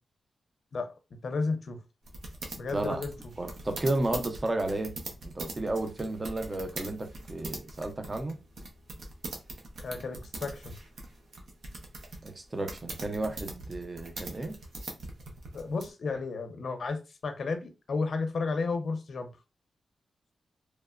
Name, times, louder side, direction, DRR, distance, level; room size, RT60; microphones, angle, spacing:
voice 1, 0.7-1.8 2.5-3.1 9.8-10.8 15.5-19.3, left 4 dB, 60° left, 0.5 m, -33 dB
sound 1, 2.1-15.9, right 2 dB, 75° right, 0.6 m, -42 dB
voice 2, 3.4-4.9 5.2-8.4 12.2-14.5, right 2 dB, 25° right, 0.5 m, -32 dB
3.0 x 2.1 x 2.3 m
wide cardioid pair, 100°, 0 cm